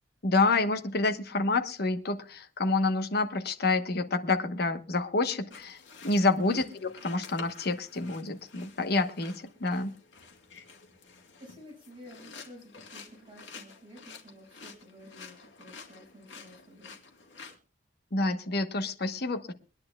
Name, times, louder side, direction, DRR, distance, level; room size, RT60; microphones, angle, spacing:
voice 1, 0.2-5.8 6.0-9.9 18.1-19.5, left 3 dB, 60° left, 8 dB, 1.2 m, -28 dB
sound 1, 5.5-17.6, left 5 dB, 75° left, 2.4 m, -50 dB
voice 2, 11.4-16.9, equal, 30° right, -1 dB, 6.5 m, -51 dB
24.0 x 10.5 x 2.3 m, 0.35 s
head